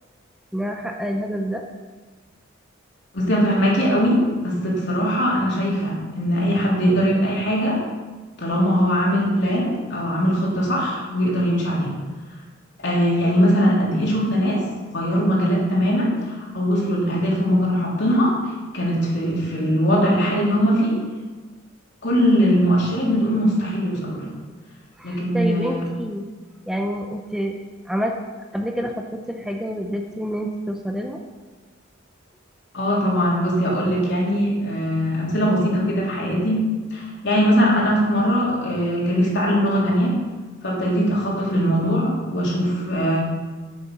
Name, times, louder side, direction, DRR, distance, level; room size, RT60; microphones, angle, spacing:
voice 1, 0.5-1.6 13.2-13.3 25.0-26.2 26.7-27.6 27.9-28.1 28.5-31.2, equal, 5° right, 2 dB, 0.6 m, -27 dB
voice 2, 3.1-7.8 8.4-11.9 12.8-14.6 14.9-18.3 18.7-21.0 22.0-24.2 25.0-25.8 32.7-36.6 36.9-40.1 40.6-43.2, equal, 60° left, -4 dB, 3.3 m, -21 dB
9.5 x 8.6 x 5.5 m, 1.3 s
head